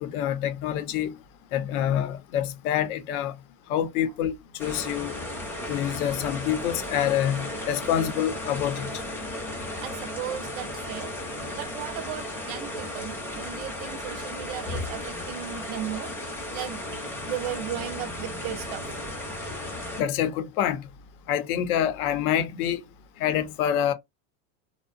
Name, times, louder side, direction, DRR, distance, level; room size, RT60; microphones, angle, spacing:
voice 1, 0.0-1.1 1.5-3.3 3.7-5.2 5.7-8.9 20.0-20.8 21.3-22.8 23.2-23.9, left 10 dB, 70° left, 0.7 m, -26 dB
sound 1, 4.6-20.0, left 1 dB, 5° left, 0.5 m, -35 dB
voice 2, 9.8-11.2 11.5-16.1 16.5-16.8 17.3-19.0, right 11 dB, 45° right, 0.4 m, -36 dB
2.7 x 2.0 x 2.4 m
supercardioid pair, 135°, 45 cm